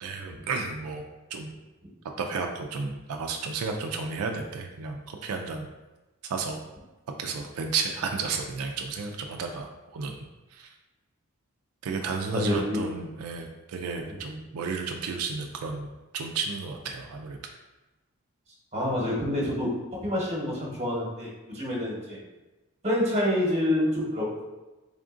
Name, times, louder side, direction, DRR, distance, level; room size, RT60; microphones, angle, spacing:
voice 1, 0.0-1.0 1.3-1.6 2.2-5.7 6.2-6.6 7.2-10.2 10.5-10.7 11.8-17.4, right 4 dB, 90° right, 3 dB, 0.4 m, -32 dB
voice 2, 12.3-12.8 14.1-14.2 18.7-19.7 20.0-22.2 22.8-24.4, left 1 dB, 30° right, -3 dB, 1.0 m, -27 dB
3.6 x 3.6 x 2.4 m, 1.1 s
head